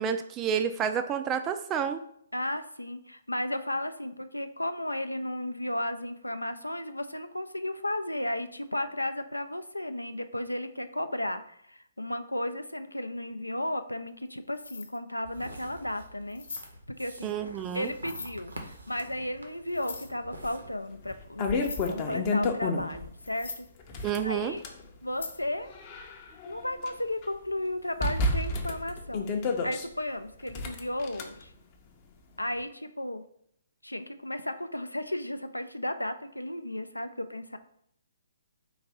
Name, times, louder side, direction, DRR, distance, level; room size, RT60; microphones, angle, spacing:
voice 1, 0.0-2.0 17.2-17.9 24.0-24.5, right 8 dB, 20° right, 8 dB, 0.3 m, -29 dB
voice 2, 2.3-16.4 17.0-17.3 17.7-23.7 24.2-24.6 25.0-25.7 26.5-29.3 29.6-31.5 32.4-33.3 33.8-37.6, left 1 dB, 90° left, 10 dB, 0.4 m, -34 dB
sound 1, 14.1-14.3 14.5-15.0 15.5-15.6 16.3-16.7 17.8-18.3 19.7-20.1 21.1-21.2 21.5-21.9 22.8-22.9 23.2-23.7 25.1-25.4, left 4 dB, 65° left, 0.7 m, -41 dB
sound 2, 15.2-20.7, right 1 dB, 75° right, 0.9 m, -47 dB
sound 3, 20.4-20.5 21.0-23.1 23.8-24.8 25.5-26.9 27.2-27.3 28.0-29.9 30.5-31.2, left 3 dB, 30° left, 0.6 m, -30 dB
3.9 x 2.6 x 4.7 m, 0.69 s
figure-of-eight pair, 130°, 0 cm